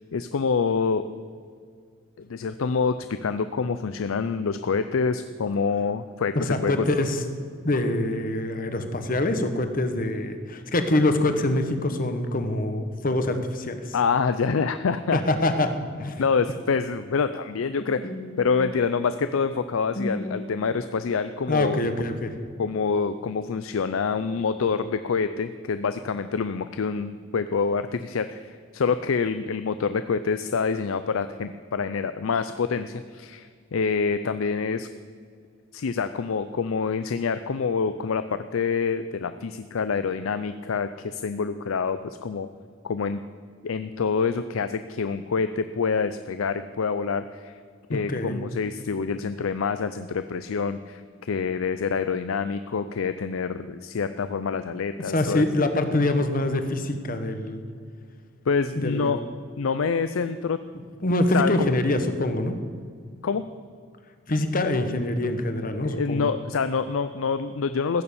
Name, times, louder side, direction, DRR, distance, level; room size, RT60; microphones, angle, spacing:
voice 1, 0.1-1.1 2.2-6.9 13.9-15.2 16.2-18.0 18.4-21.9 22.6-34.9 35.7-42.5 42.8-43.2 43.6-47.6 47.9-55.5 58.5-59.2 59.6-60.6 61.3-61.7 63.2-63.4 65.8-68.0, left 5 dB, 80° left, 11 dB, 0.5 m, -26 dB
voice 2, 6.3-7.2 7.6-13.9 15.1-15.7 16.0-16.1 18.0-18.7 19.9-20.5 21.5-22.3 47.9-48.4 55.1-57.6 58.8-59.2 61.0-62.5 64.3-66.2, left 1 dB, 45° left, 7 dB, 1.2 m, -25 dB
15.5 x 7.0 x 8.5 m, 2.1 s
head